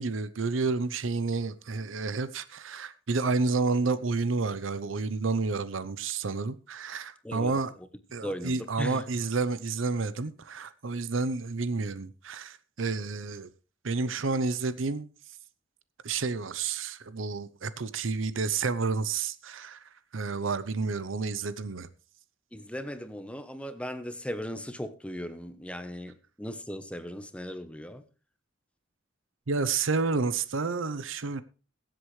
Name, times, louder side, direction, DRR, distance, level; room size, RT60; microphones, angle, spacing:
voice 1, 0.0-7.7 8.1-13.5 13.8-15.1 16.0-21.9 29.5-31.4, right 4 dB, 85° right, 0.7 m, -30 dB
voice 2, 8.2-9.0 22.5-28.0, equal, 5° left, 0.9 m, -37 dB
22.0 x 7.9 x 3.2 m
head